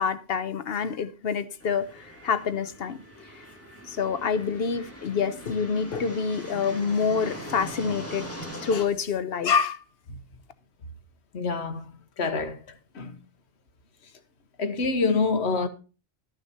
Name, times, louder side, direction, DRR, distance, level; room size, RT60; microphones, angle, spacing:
voice 1, 0.0-3.0 3.9-8.3 8.6-9.8, left 6 dB, 65° left, 1.0 m, -27 dB
sound 1, 1.6-8.8, equal, 15° left, 2.1 m, -41 dB
voice 2, 11.3-11.9 12.2-13.2 14.6-15.7, left 4 dB, 80° left, 1.3 m, -27 dB
13.0 x 6.4 x 4.2 m
omnidirectional pair, 1.1 m